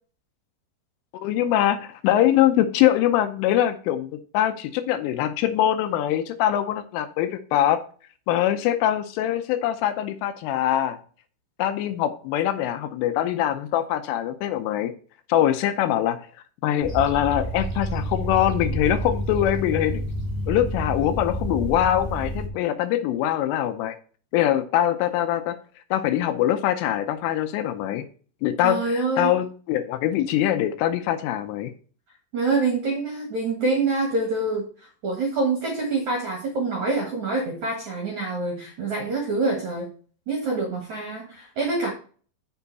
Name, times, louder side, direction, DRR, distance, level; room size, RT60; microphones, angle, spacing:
voice 1, 1.2-7.8 8.3-11.0 11.6-14.9 15.3-16.2 16.6-20.0 20.5-24.0 24.3-25.6 25.9-28.0 28.4-31.7, left 12 dB, 80° left, 9 dB, 3.1 m, -23 dB
sound 1, 16.8-22.5, right 1 dB, 15° left, 0.9 m, -29 dB
voice 2, 28.6-29.3 32.3-34.7 35.0-39.9 40.3-41.9, right 3 dB, 65° right, 1 dB, 1.9 m, -26 dB
7.8 x 7.0 x 4.1 m, 0.41 s
omnidirectional pair, 5.9 m